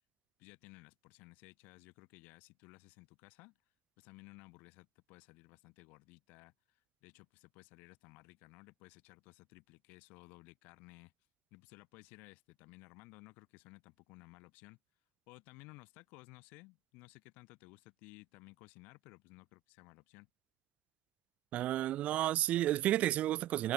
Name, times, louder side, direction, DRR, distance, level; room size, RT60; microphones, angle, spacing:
voice 1, 0.4-3.5 4.0-11.1 11.5-14.8 15.3-20.3, left 25 dB, 90° left, 2.7 m, -58 dB
voice 2, 21.5-23.7, right 13 dB, 50° right, 0.4 m, -31 dB
cardioid pair, 150°, 3 cm